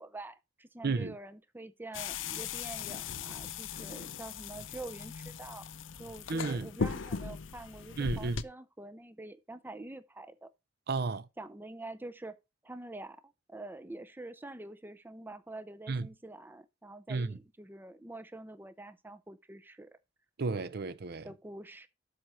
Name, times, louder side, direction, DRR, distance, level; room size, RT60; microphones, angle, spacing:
voice 1, 0.0-5.7 6.0-10.5 11.4-12.4 12.6-19.9 21.2-21.9, right 2 dB, 10° right, 0.5 m, -46 dB
voice 2, 0.8-1.1 6.3-6.7 8.0-8.4 10.9-11.3 15.9-16.1 17.1-17.4 20.4-21.3, right 3 dB, 55° right, 0.6 m, -32 dB
sound 1, 1.9-8.4, left 6 dB, 85° left, 0.6 m, -39 dB
7.8 x 4.3 x 6.2 m
head